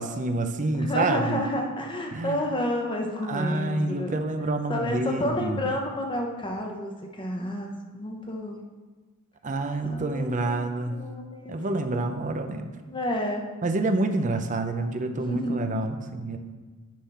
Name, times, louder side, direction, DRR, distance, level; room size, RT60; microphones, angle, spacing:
voice 1, 0.0-1.5 2.1-2.4 3.3-5.7 9.4-11.0 11.5-12.7 13.6-16.4, right 2 dB, 35° right, 7 dB, 0.6 m, -28 dB
voice 2, 0.8-4.1 4.7-8.6 9.8-11.6 12.9-13.4 15.1-15.7, left 1 dB, 20° left, 2 dB, 0.9 m, -30 dB
10.0 x 3.7 x 5.6 m, 1.3 s
head